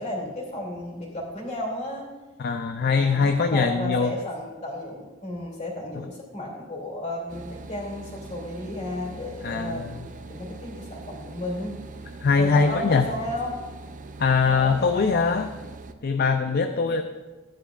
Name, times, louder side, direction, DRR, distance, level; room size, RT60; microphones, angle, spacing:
voice 1, 0.0-2.1 2.8-11.8 12.4-13.6 14.5-15.3 16.3-17.0, left 1 dB, 35° left, -2 dB, 2.8 m, -34 dB
voice 2, 2.4-4.1 9.4-9.9 12.2-13.1 14.2-15.5 16.0-17.0, left 5 dB, 50° left, 7 dB, 0.4 m, -22 dB
sound 1, 7.3-15.9, right 3 dB, 40° right, 0.5 m, -42 dB
13.5 x 10.0 x 2.5 m, 1.2 s
head